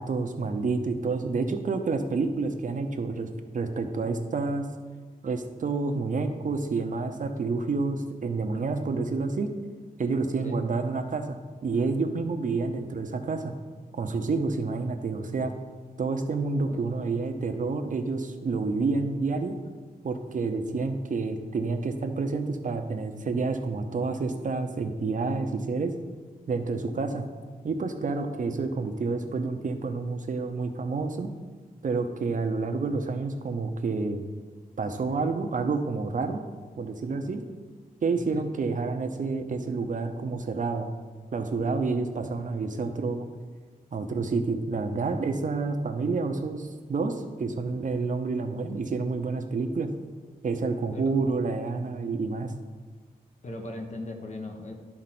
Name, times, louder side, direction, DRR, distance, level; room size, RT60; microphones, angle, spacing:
voice 1, 0.0-3.3 3.5-4.7 5.2-9.5 10.0-13.5 13.9-15.5 16.0-19.6 20.0-25.9 26.5-27.2 27.6-31.3 31.8-34.2 34.8-36.4 36.8-37.4 38.0-40.9 41.3-43.3 43.9-49.9 50.4-52.5, right 4 dB, 60° right, 6 dB, 0.8 m, -29 dB
voice 2, 10.2-10.6 16.6-17.1 38.1-38.5 50.9-51.0 53.4-54.7, left 2 dB, 50° left, 3 dB, 1.2 m, -39 dB
12.0 x 4.3 x 6.0 m, 1.4 s
wide cardioid pair, 160°, 15 cm